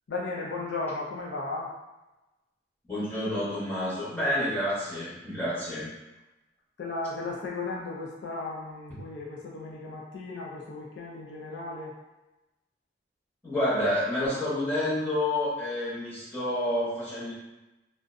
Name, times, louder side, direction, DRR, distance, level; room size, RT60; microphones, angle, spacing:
voice 1, 0.1-1.7 6.8-11.9, left 3 dB, 65° left, -3 dB, 0.4 m, -35 dB
voice 2, 2.9-5.9 13.4-17.3, left 1 dB, 10° left, -11 dB, 0.8 m, -29 dB
2.4 x 2.1 x 2.4 m, 1.0 s
head